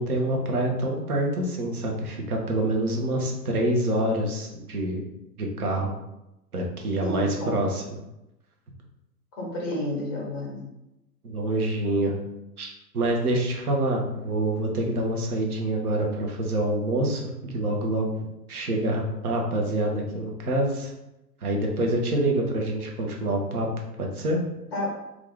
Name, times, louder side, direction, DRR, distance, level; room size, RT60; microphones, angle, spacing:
voice 1, 0.0-5.0 5.4-5.9 6.5-7.8 11.2-12.1 12.6-18.1 18.5-20.9 21.4-23.7 24.0-24.4, right 1 dB, 60° right, 1 dB, 0.9 m, -26 dB
voice 2, 7.0-7.6 9.4-10.7 24.7-24.9, left 1 dB, 15° left, -2 dB, 0.5 m, -30 dB
2.9 x 2.4 x 3.6 m, 0.91 s
figure-of-eight pair, 115°, 50 cm